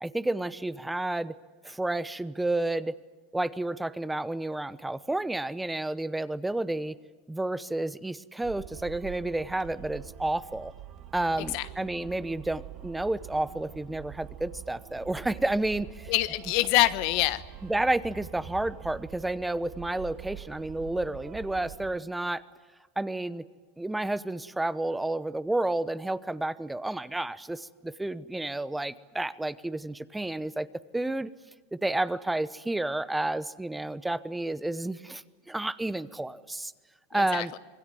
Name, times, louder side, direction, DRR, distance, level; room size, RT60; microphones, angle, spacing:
voice 1, 0.0-1.4 1.6-3.0 3.3-6.9 7.3-10.7 11.1-16.1 17.7-22.4 23.0-23.4 23.8-30.7 30.9-31.3 31.7-36.7 37.1-37.5, right 2 dB, 5° right, 14 dB, 0.9 m, -31 dB
sound 1, 8.4-22.0, right 11 dB, 45° right, 2.1 m, -45 dB
voice 2, 11.4-11.7 16.1-17.4 37.1-37.6, left 17 dB, 60° left, 13 dB, 1.4 m, -26 dB
26.5 x 21.5 x 9.2 m, 1.3 s
supercardioid pair, 125°, 0 cm